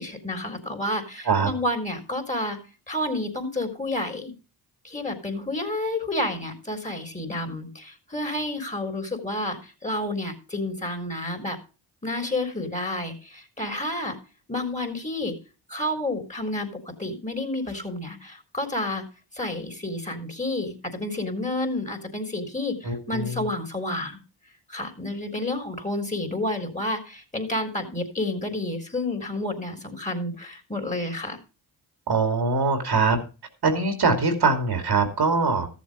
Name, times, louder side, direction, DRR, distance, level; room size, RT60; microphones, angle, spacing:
voice 1, 0.0-2.6 2.9-4.3 4.8-11.6 12.0-14.2 14.5-15.3 15.7-16.7 17.0-19.0 19.3-24.2 24.7-31.4, left 1 dB, 15° left, 5 dB, 3.9 m, -30 dB
voice 2, 22.8-23.4 32.1-33.2 33.6-35.7, right 4 dB, 50° right, 6 dB, 2.6 m, -22 dB
13.5 x 7.4 x 5.0 m, 0.33 s
supercardioid pair, 50°, 49 cm